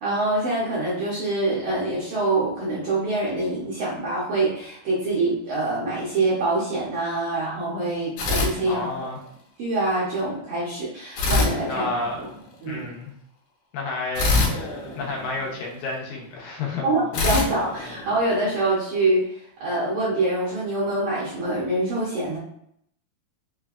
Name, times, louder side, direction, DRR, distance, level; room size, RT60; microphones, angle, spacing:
voice 1, 0.0-8.9 9.6-11.9 12.2-12.3 12.6-12.8 16.8-22.4, right 2 dB, 70° right, -8 dB, 1.6 m, -25 dB
sound 1, 8.2-9.3 11.2-12.5 14.1-15.8 17.1-18.7, left 3 dB, 70° left, 2.1 m, -26 dB
voice 2, 8.7-9.2 11.7-12.4 12.7-13.1 13.7-14.4 15.0-17.3, left 3 dB, 90° left, -2 dB, 2.5 m, -30 dB
5.4 x 2.2 x 2.4 m, 0.72 s
omnidirectional pair, 3.9 m